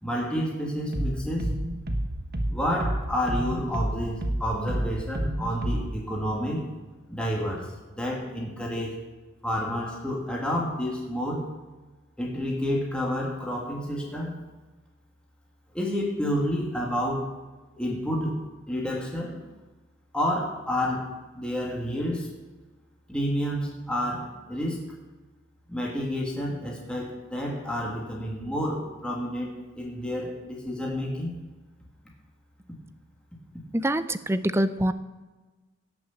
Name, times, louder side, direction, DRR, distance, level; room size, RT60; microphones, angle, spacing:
voice 1, 0.0-1.5 2.5-6.7 7.1-9.0 9.4-11.5 12.2-14.4 15.7-17.3 17.8-19.4 20.1-21.1 21.4-22.3 23.1-24.9 25.7-31.3, equal, 5° left, -3 dB, 2.0 m, -29 dB
sound 1, 0.9-5.9, right 1 dB, 50° right, 1.5 m, -30 dB
voice 2, 33.7-34.9, right 1 dB, 15° right, 13 dB, 0.5 m, -25 dB
17.5 x 6.2 x 7.2 m, 1.2 s
head